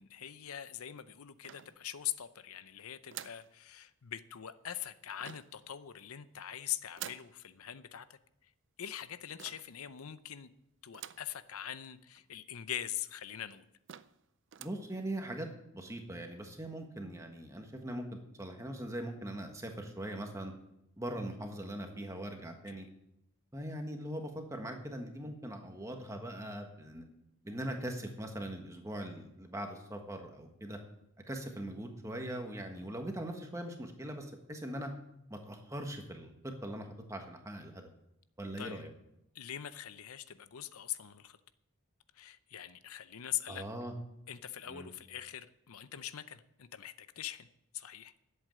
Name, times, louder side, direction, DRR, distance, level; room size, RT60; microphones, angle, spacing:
voice 1, 0.0-8.5 8.8-10.5 10.8-13.7 22.7-22.9 38.6-38.9 39.3-41.4 42.1-43.6 44.3-47.5 47.7-48.1, left 11 dB, 80° left, 13 dB, 0.6 m, -42 dB
sound 1, 1.4-2.2 3.1-3.5 5.2-5.6 6.9-7.4 9.4-9.8 10.9-11.4 11.8-11.9 12.1-12.2 13.0-13.1 13.5-13.6 13.9-14.2 14.5-14.9, right 11 dB, 55° right, 0.4 m, -48 dB
voice 2, 14.6-15.5 15.7-20.5 21.0-22.9 23.5-27.0 27.4-30.8 31.3-34.9 35.3-37.9 38.4-38.9 43.5-43.9 44.7-44.9, right 1 dB, 15° right, 4 dB, 1.4 m, -41 dB
11.0 x 8.1 x 7.7 m, 0.82 s
head